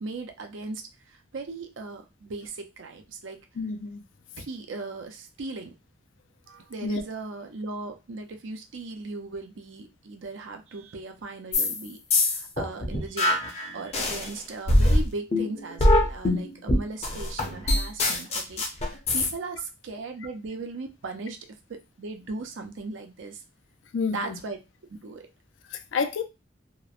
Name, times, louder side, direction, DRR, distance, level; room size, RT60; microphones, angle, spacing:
voice 1, 0.0-0.8 1.3-3.4 4.4-5.7 6.5-12.0 12.3-21.4 21.7-23.4 24.1-24.6 25.0-25.3, right 3 dB, 90° right, 0.5 m, -38 dB
voice 2, 3.6-4.0 6.8-7.0 23.9-24.4 25.7-26.2, left 4 dB, 85° left, 0.4 m, -29 dB
sound 1, 11.5-11.8 12.1-14.3 14.7-19.3, left 1 dB, 35° left, 0.5 m, -23 dB
3.0 x 2.0 x 2.4 m
head